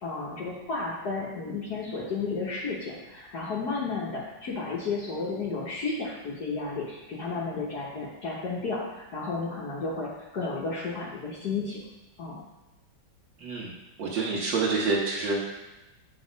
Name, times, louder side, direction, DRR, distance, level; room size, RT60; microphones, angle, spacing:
voice 1, 0.0-11.8 12.2-12.4, left 4 dB, 60° left, -6 dB, 1.6 m, -32 dB
voice 2, 13.4-15.4, right 3 dB, 80° right, -5 dB, 1.8 m, -28 dB
7.6 x 4.1 x 5.1 m, 1.0 s
omnidirectional pair, 2.0 m